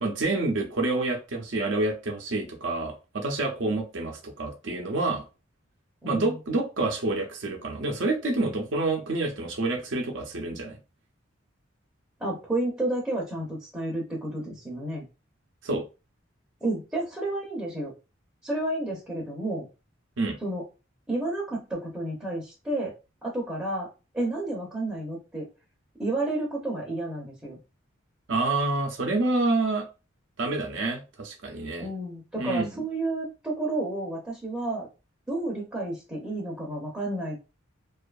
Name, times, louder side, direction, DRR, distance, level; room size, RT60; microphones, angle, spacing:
voice 1, 0.0-5.2 6.0-10.8 15.6-15.8 20.2-20.4 28.3-29.8 30.4-31.9 32.3-32.8, right 2 dB, 65° right, 3 dB, 0.6 m, -28 dB
voice 2, 6.0-6.4 12.2-15.1 16.6-17.9 18.4-19.7 20.4-20.6 21.1-22.9 23.2-23.9 24.1-25.5 26.0-27.6 31.8-34.9 35.3-37.4, right 2 dB, 10° right, -4 dB, 0.6 m, -31 dB
2.6 x 2.4 x 2.3 m, 0.30 s
head